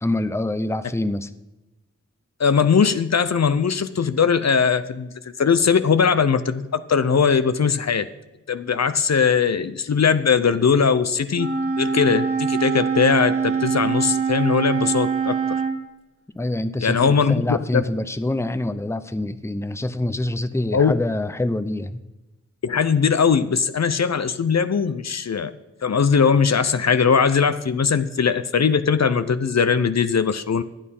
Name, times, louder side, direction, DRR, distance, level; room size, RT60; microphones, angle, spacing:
voice 1, 0.0-1.3 16.3-22.0, left 1 dB, 10° left, 12 dB, 0.6 m, -25 dB
voice 2, 2.4-5.1 5.4-8.1 8.5-15.6 16.8-17.8 20.7-20.9 22.6-25.5 25.8-30.6, left 6 dB, 65° left, 12 dB, 0.6 m, -20 dB
Wind instrument woodwind instrument, 11.3-15.8, right 6 dB, 50° right, 1.6 m, -23 dB
12.0 x 8.7 x 5.5 m, 1.0 s
wide cardioid pair, 80°, 29 cm